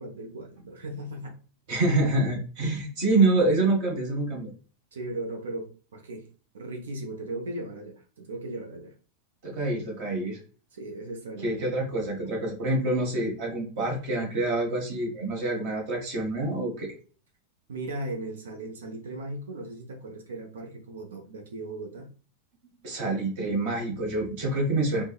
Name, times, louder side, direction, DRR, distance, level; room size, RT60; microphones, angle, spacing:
voice 1, 0.0-1.4 4.9-6.3 6.5-9.0 10.7-12.1 17.7-22.1, right 2 dB, 65° right, 2 dB, 0.5 m, -37 dB
voice 2, 1.7-4.5 9.4-10.4 11.4-16.9 22.8-25.0, right 2 dB, 50° right, 0 dB, 1.0 m, -26 dB
3.5 x 2.0 x 2.3 m, 0.38 s
figure-of-eight pair, 90°, 0 cm